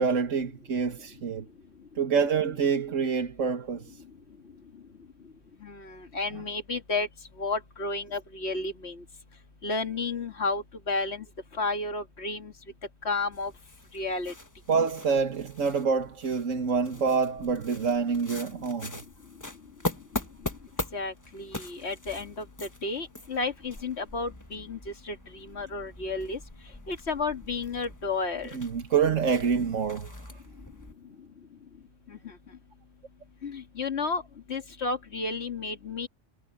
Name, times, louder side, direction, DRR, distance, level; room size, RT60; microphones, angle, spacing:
voice 1, 0.0-1.5 2.0-3.9 14.7-18.9 28.5-30.3, right 5 dB, 90° right, 1.8 m, -26 dB
voice 2, 5.6-7.1 7.4-9.0 9.6-11.3 11.6-12.5 13.0-13.5 13.9-14.3 20.9-26.4 26.9-28.6 32.1-32.3 33.4-34.2 34.5-36.1, left 3 dB, 60° left, 2.2 m, -32 dB
sound 1, 13.3-30.9, left 2 dB, 15° left, 1.3 m, -42 dB
omnidirectional pair, 1.3 m